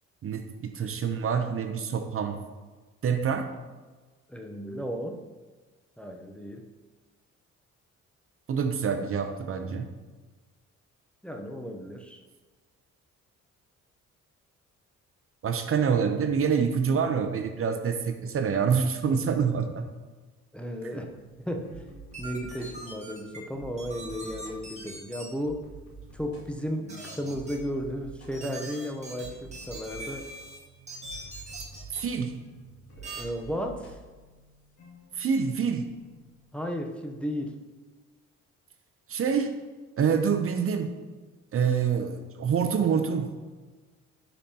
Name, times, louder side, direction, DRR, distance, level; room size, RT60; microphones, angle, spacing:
voice 1, 0.2-2.4 3.0-3.5 8.5-9.8 15.4-19.8 31.9-32.3 35.1-35.9 39.1-39.5 40.0-40.9 41.5-43.3, right 6 dB, 45° right, 7 dB, 0.7 m, -26 dB
voice 2, 4.3-5.2 6.0-6.7 11.2-12.2 20.5-21.7 22.2-25.6 26.1-30.2 33.0-34.0 36.5-37.6, equal, 5° left, 2 dB, 0.8 m, -34 dB
sound 1, 20.9-37.2, right 2 dB, 70° left, 2.2 m, -49 dB
sound 2, 22.1-23.4 23.8-25.2 26.9-27.6 28.3-30.6 30.9-32.0 33.0-33.2, right 2 dB, 20° right, 1.8 m, -42 dB
9.9 x 5.3 x 2.9 m, 1.3 s
cardioid pair, 90°, 30 cm